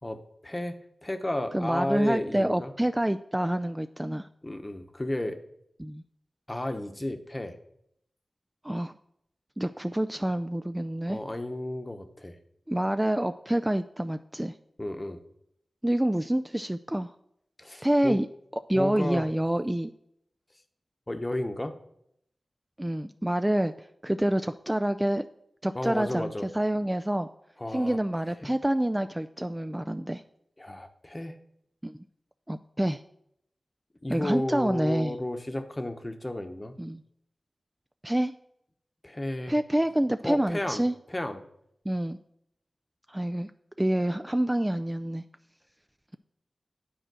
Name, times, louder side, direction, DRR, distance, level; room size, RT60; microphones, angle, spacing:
voice 1, 0.0-0.8 1.0-2.7 4.4-5.4 6.5-7.6 11.1-12.4 14.8-15.2 17.6-18.2 18.7-19.3 21.1-21.7 25.7-26.5 27.6-28.0 28.4-28.5 30.6-31.4 34.0-36.7 39.0-39.6 40.2-40.8 41.1-41.4, left 1 dB, 25° left, 6 dB, 0.9 m, -32 dB
voice 2, 1.5-4.3 5.8-6.0 8.6-8.9 9.6-11.2 12.7-14.6 15.8-17.1 17.8-18.3 18.5-19.9 22.8-25.2 25.6-27.3 27.7-30.2 31.8-32.0 32.5-33.0 34.1-35.1 36.8-37.0 38.0-38.3 39.5-40.9 41.9-42.2 43.1-43.5 43.8-45.2, right 1 dB, 15° right, 9 dB, 0.3 m, -27 dB
9.3 x 4.4 x 6.1 m, 0.74 s
cardioid pair, 50°, 0 cm